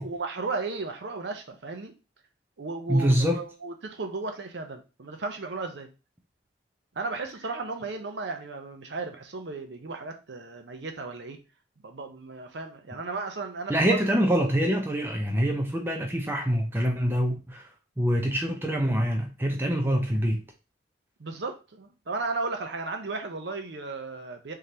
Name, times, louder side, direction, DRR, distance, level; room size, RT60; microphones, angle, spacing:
voice 1, 0.0-1.9 2.6-5.9 7.0-11.4 11.8-14.0 21.2-24.5, right 3 dB, 70° right, 0.6 m, -35 dB
voice 2, 2.9-3.4 13.7-17.6 18.0-20.4, equal, 10° right, 0.5 m, -25 dB
3.8 x 3.2 x 2.8 m
head